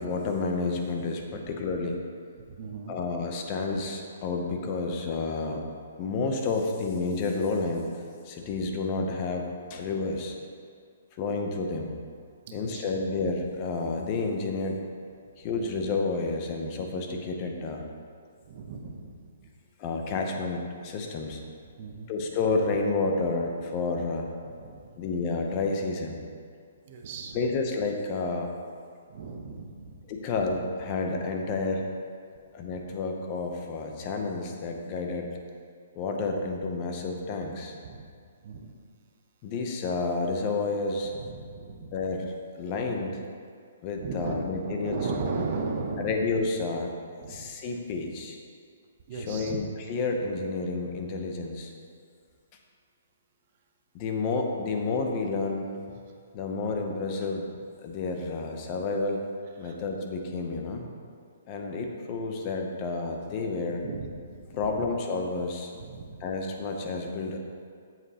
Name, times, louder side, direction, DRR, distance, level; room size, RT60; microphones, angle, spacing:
voice 1, 0.0-2.0 2.9-5.6 6.0-7.9 8.2-10.4 11.1-11.9 12.5-14.8 15.4-17.8 19.8-21.4 22.1-24.3 25.0-26.2 27.3-28.5 30.1-31.8 32.5-35.4 35.9-37.7 39.4-41.1 41.9-43.2 43.8-45.0 46.0-46.9 47.3-48.4 49.3-51.7 53.9-55.7 56.3-57.5 57.8-59.3 59.6-60.9 61.5-63.8 64.5-65.7 66.2-67.4, left 3 dB, 20° left, 2 dB, 0.6 m, -30 dB
voice 2, 2.4-3.0 6.1-6.2 12.5-12.9 18.4-19.5 21.3-21.4 21.8-22.1 24.4-25.0 26.9-27.5 29.1-30.0 37.8-38.1 38.4-38.7 41.1-42.1 44.0-46.2 47.2-47.5 49.1-49.6 59.6-59.8 63.8-64.9 65.7-66.2, right 4 dB, 30° right, 2 dB, 0.7 m, -37 dB
8.0 x 7.5 x 2.8 m, 2.2 s
hypercardioid pair, 175°, 0 cm